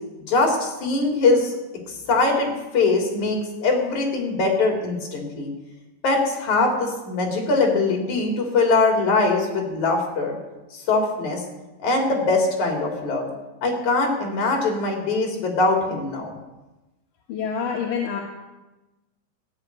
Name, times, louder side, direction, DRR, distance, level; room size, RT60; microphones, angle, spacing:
voice 1, 0.3-1.5 2.1-5.5 6.0-10.4 10.7-11.4 11.8-13.3 13.6-16.3, left 3 dB, 45° left, 1 dB, 4.1 m, -22 dB
voice 2, 17.3-18.2, left 6 dB, 60° left, -1 dB, 2.6 m, -26 dB
14.5 x 7.5 x 9.6 m, 1.1 s
omnidirectional pair, 5.0 m